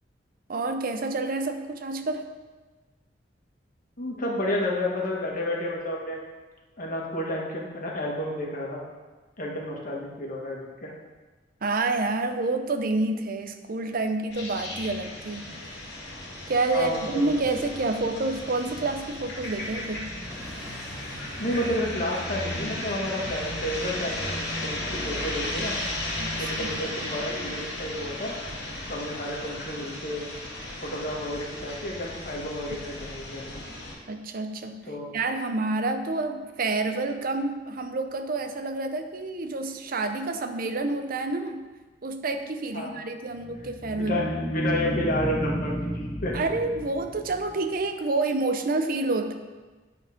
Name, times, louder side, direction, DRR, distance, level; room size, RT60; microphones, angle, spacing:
voice 1, 0.5-2.3 11.6-15.8 16.5-20.1 26.2-26.7 34.1-41.6 42.0-44.3 46.3-49.3, right 3 dB, 50° right, 7 dB, 0.7 m, -28 dB
voice 2, 4.0-6.2 6.8-8.8 9.4-10.9 16.7-17.2 21.4-25.7 26.4-28.3 28.9-30.3 30.8-33.6 34.9-35.1 42.7-42.9 43.9-45.9 46.2-46.3, left 1 dB, 50° left, -2 dB, 1.6 m, -31 dB
sound 1, 14.3-33.9, left 1 dB, 65° left, 2.2 m, -35 dB
Explosion / Shatter, 20.3-23.1, equal, 5° right, 1.2 m, -48 dB
sound 2, 43.4-47.9, equal, 15° left, 0.6 m, -32 dB
10.0 x 4.3 x 5.2 m, 1.3 s
head